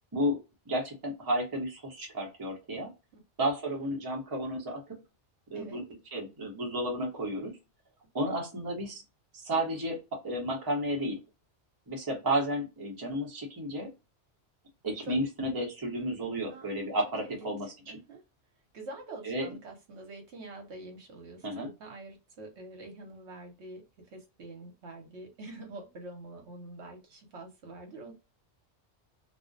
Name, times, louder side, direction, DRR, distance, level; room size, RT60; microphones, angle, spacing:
voice 1, 0.7-2.9 3.4-5.0 5.5-5.8 6.1-7.6 8.1-9.0 9.3-10.0 10.2-11.2 11.9-13.9 14.8-17.7 19.2-19.5 21.4-21.7, right 1 dB, 25° right, 0.6 m, -32 dB
voice 2, 16.5-16.9 17.2-17.6 17.9-18.2 18.7-23.8 24.1-28.1, right 2 dB, 70° right, 1.0 m, -46 dB
2.4 x 2.1 x 2.5 m
omnidirectional pair, 1.2 m